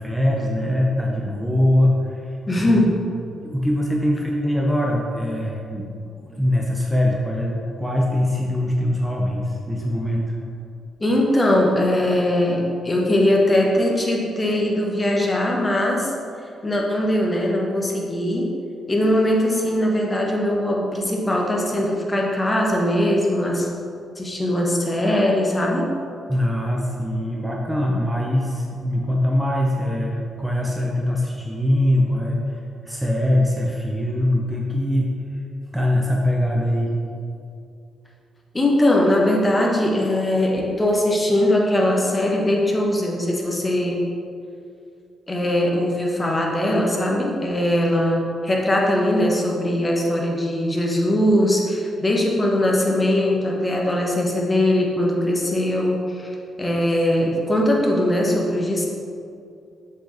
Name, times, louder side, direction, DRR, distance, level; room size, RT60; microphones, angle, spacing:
voice 1, 0.0-2.8 3.4-5.8 6.2-10.4 26.3-35.2 35.7-36.9, left 1 dB, 5° right, -2 dB, 0.9 m, -22 dB
voice 2, 2.5-3.0 11.0-16.1 16.6-18.5 18.9-23.7 24.2-25.9 38.5-44.0 45.3-56.3 56.6-58.9, left 1 dB, 25° left, -1 dB, 1.3 m, -20 dB
6.2 x 5.4 x 4.1 m, 2.5 s
hypercardioid pair, 40°, 0 cm